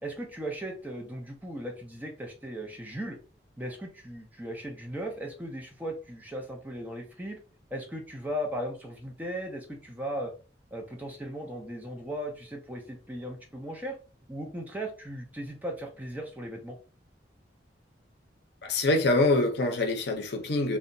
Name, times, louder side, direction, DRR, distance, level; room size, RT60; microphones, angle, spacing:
voice 1, 0.0-3.2 3.6-7.4 7.7-10.3 10.7-14.0 14.3-16.8, equal, 10° right, 0.5 m, -37 dB
voice 2, 18.6-20.8, left 2 dB, 60° left, 0.6 m, -25 dB
2.7 x 2.1 x 2.6 m
head